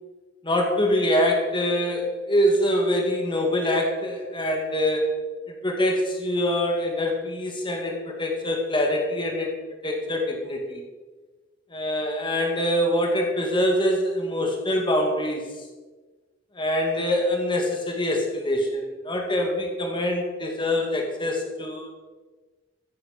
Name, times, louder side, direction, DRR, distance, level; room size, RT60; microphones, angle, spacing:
voice 1, 0.4-5.2 5.5-9.6 9.8-10.8 11.7-15.4 16.5-21.9, left 1 dB, 25° left, 1 dB, 2.1 m, -24 dB
14.0 x 10.5 x 5.3 m, 1.3 s
head